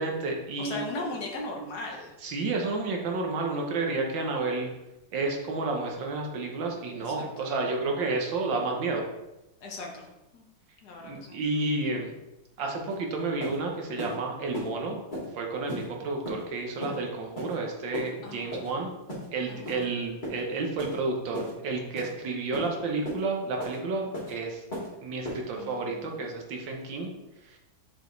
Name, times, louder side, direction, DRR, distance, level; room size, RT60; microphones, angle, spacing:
voice 1, 0.0-0.8 2.2-4.7 5.1-9.0 11.0-12.1 12.6-15.0 15.4-18.9 19.3-24.6 25.0-27.1 27.5-27.6, right 3 dB, 75° right, 1 dB, 1.7 m, -31 dB
voice 2, 0.6-2.1 7.0-7.7 9.6-10.1 10.3-10.5 10.8-11.4 18.2-18.6 19.5-19.9 25.5-26.2, left 2 dB, 60° left, 0 dB, 1.6 m, -38 dB
sound 1, 12.9-13.0 13.4-13.6 14.0-14.1 14.5-14.7 15.1-15.3 15.7-15.8 16.2-16.4 16.8-17.0 17.4-17.6 17.9-18.1 18.5-18.7 19.1-19.3 19.7-19.8 20.2-20.4 20.8-21.0 21.3-21.5 22.0-22.1 22.5-22.7 23.0-23.2 23.6-23.8 24.1-24.3 24.7-24.9 25.2-25.4, equal, 25° left, 2.7 m, -35 dB
6.3 x 5.0 x 3.9 m, 0.96 s
omnidirectional pair, 2.1 m